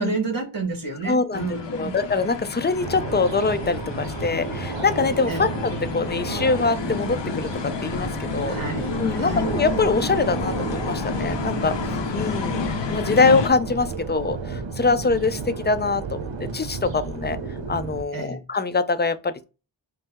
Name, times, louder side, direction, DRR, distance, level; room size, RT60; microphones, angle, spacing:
voice 1, 0.0-1.9 5.3-5.5 8.4-9.5 18.1-18.4, right 3 dB, 45° right, 1.4 m, -30 dB
voice 2, 1.0-8.5 9.0-11.7 12.1-17.4 17.7-19.4, left 4 dB, 25° left, 0.4 m, -24 dB
sound 1, 1.3-13.5, left 6 dB, 70° left, 0.7 m, -30 dB
sound 2, 2.8-18.0, right 5 dB, 75° right, 0.7 m, -32 dB
5.3 x 2.0 x 3.5 m
wide cardioid pair, 50°, 45 cm